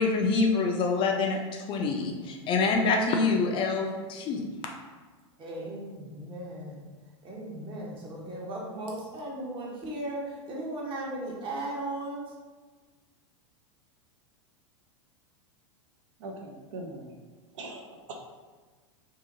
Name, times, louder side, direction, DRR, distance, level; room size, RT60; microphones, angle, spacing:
voice 1, 0.0-4.5, left 4 dB, 35° left, 2 dB, 0.4 m, -26 dB
voice 2, 5.4-6.8 7.2-10.2 10.5-12.3, right 1 dB, 30° right, -3 dB, 0.9 m, -36 dB
voice 3, 16.2-17.2 17.5-18.2, right 2 dB, 70° right, 1 dB, 0.5 m, -41 dB
2.7 x 2.5 x 2.5 m, 1.4 s
hypercardioid pair, 100°, 16 cm